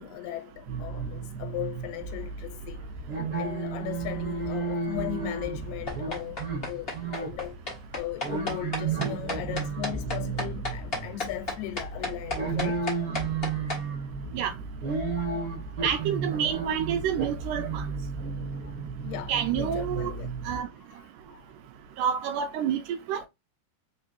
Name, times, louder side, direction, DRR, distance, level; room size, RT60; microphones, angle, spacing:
voice 1, 0.0-2.9 3.4-7.6 8.0-12.9 19.0-20.3 21.0-21.4, left 14 dB, 80° left, 2.4 m, -37 dB
sound 1, 0.7-20.6, right 4 dB, 40° right, 1.7 m, -33 dB
sound 2, 5.9-13.8, left 2 dB, 40° left, 0.8 m, -33 dB
voice 2, 15.8-17.9 19.3-20.1 20.5-20.7 22.0-22.8 23.1-23.2, right 9 dB, 80° right, 1.9 m, -28 dB
4.6 x 3.9 x 2.4 m
omnidirectional pair, 3.9 m